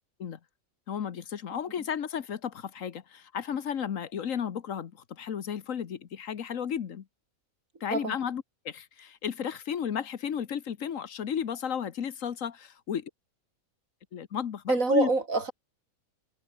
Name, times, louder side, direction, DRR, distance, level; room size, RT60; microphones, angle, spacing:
voice 1, 0.9-7.0 7.8-13.1 14.1-15.1, left 8 dB, 65° left, 1.4 m, -33 dB
voice 2, 14.7-15.5, right 3 dB, 70° right, 3.7 m, -25 dB
omnidirectional pair, 1.5 m